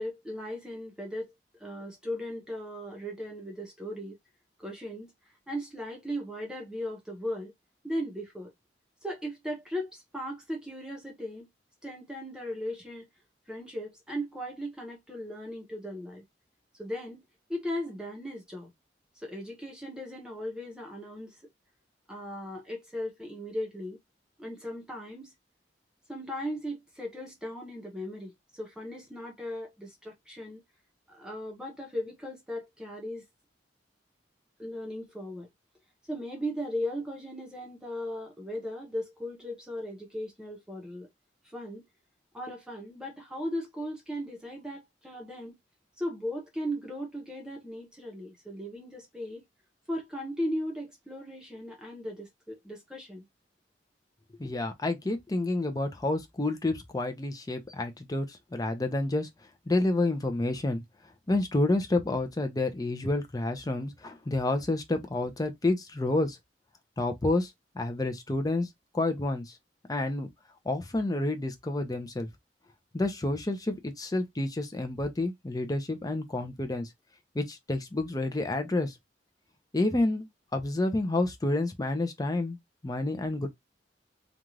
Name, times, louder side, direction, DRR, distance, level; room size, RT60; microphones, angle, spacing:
voice 1, 0.0-1.3 1.6-4.2 4.6-5.1 5.5-7.5 7.8-8.5 9.0-11.5 11.8-13.1 13.5-16.2 16.8-17.2 17.5-18.7 19.2-21.4 22.1-24.0 24.4-25.3 26.1-30.6 31.1-33.2 34.6-35.5 36.1-41.1 41.4-41.8 42.3-45.6 46.0-49.4 49.9-53.3 54.4-54.5, equal, 5° right, 0.8 m, -37 dB
voice 2, 54.4-59.3 59.7-60.8 61.3-66.4 67.0-68.7 68.9-69.5 69.9-70.3 70.6-72.3 72.9-76.9 77.3-78.9 79.7-80.3 80.5-82.6 82.8-83.5, left 2 dB, 20° left, 0.6 m, -29 dB
2.5 x 2.4 x 3.0 m
head